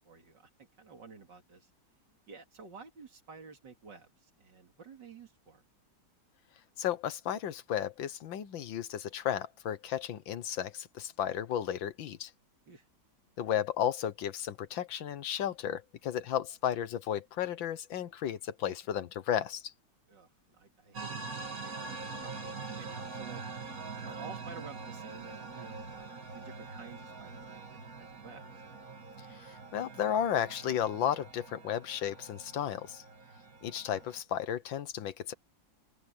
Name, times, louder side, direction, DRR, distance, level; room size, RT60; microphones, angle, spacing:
voice 1, 0.0-1.7 2.3-5.6 12.7-12.8 20.1-23.4 24.1-27.6 28.0-28.5, right 5 dB, 65° right, 3.3 m, -51 dB
voice 2, 6.8-12.3 13.4-19.7 29.5-33.0 33.6-35.3, left 10 dB, 85° left, 1.8 m, -33 dB
sound 1, 20.9-34.2, right 4 dB, 50° right, 2.4 m, -44 dB
open air
omnidirectional pair, 2.0 m